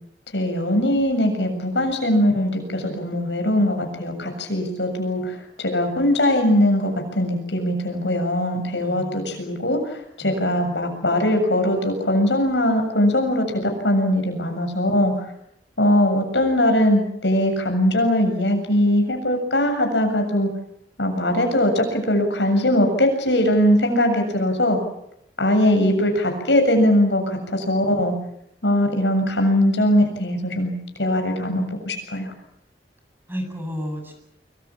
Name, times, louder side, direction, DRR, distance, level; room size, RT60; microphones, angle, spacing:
voice 1, 0.3-9.8 10.2-15.1 15.8-20.5 21.0-24.8 25.4-28.1 28.6-30.7 31.0-32.3, left 1 dB, 85° left, 5 dB, 7.3 m, -20 dB
voice 2, 8.8-9.4 10.2-10.4 33.3-34.1, equal, 15° right, 4 dB, 8.0 m, -32 dB
25.0 x 24.5 x 7.4 m, 0.75 s
head